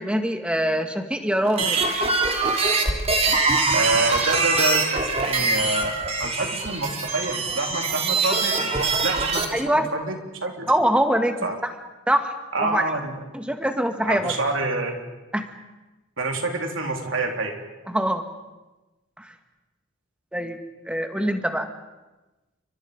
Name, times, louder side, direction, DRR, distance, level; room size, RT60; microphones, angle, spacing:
voice 1, 0.0-1.8 9.5-9.9 10.7-11.7 12.1-12.3 12.6-12.8 13.3-14.3 15.3-15.4 17.9-18.2 19.2-19.3 20.3-20.6 20.8-21.7, equal, 5° right, 6 dB, 1.7 m, -23 dB
sound 1, 1.4-9.5, right 3 dB, 30° right, 3.0 m, -23 dB
voice 2, 3.7-9.6 9.9-10.7 11.4-11.6 12.5-13.2 14.0-15.0 16.2-17.5, right 2 dB, 65° right, 2 dB, 3.7 m, -27 dB
29.5 x 25.0 x 5.3 m, 1.1 s
head